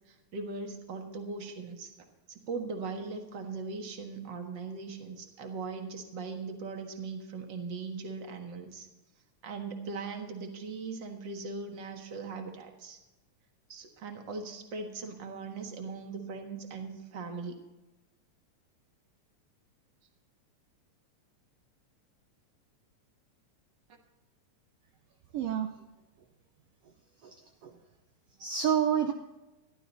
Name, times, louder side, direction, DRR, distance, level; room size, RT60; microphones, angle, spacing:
voice 1, 0.1-1.9 2.3-8.9 9.4-13.0 13.7-17.6, right 4 dB, 45° right, 4 dB, 1.7 m, -39 dB
voice 2, 25.3-25.7 27.2-27.7 28.4-29.1, right 8 dB, 75° right, 5 dB, 1.5 m, -29 dB
13.5 x 12.0 x 4.1 m, 1.1 s
omnidirectional pair, 3.4 m